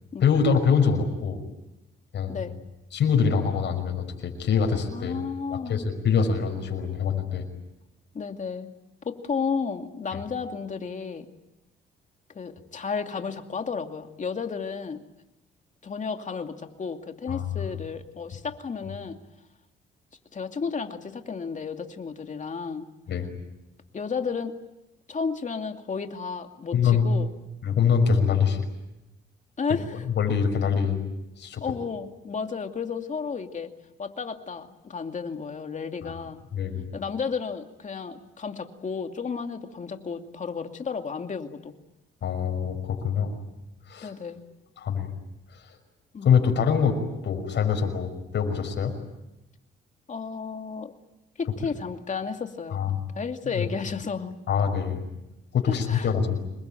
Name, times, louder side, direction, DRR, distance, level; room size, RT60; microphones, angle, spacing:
voice 1, 0.2-1.4 2.1-2.4 2.9-5.2 5.5-7.4 17.3-17.4 23.1-23.3 26.7-27.1 27.6-28.6 30.2-31.0 31.4-31.6 36.5-36.9 42.2-43.3 43.9-44.1 44.8-45.1 46.2-47.0 47.2-48.9 52.7-52.9 53.6-53.7 54.5-55.0 55.5-56.4, left 6 dB, 60° left, 3 dB, 5.9 m, -24 dB
voice 2, 4.9-5.9 8.1-8.7 9.0-11.3 12.3-15.0 15.8-19.2 20.3-22.9 23.9-24.5 25.1-27.3 29.6-30.0 31.6-33.7 34.0-36.4 36.9-41.7 44.0-44.4 46.1-46.3 50.1-50.9 51.4-54.4 55.7-56.1, left 5 dB, 40° left, 5 dB, 2.5 m, -32 dB
27.0 x 22.0 x 9.1 m, 0.93 s
cardioid pair, 90°, 20 cm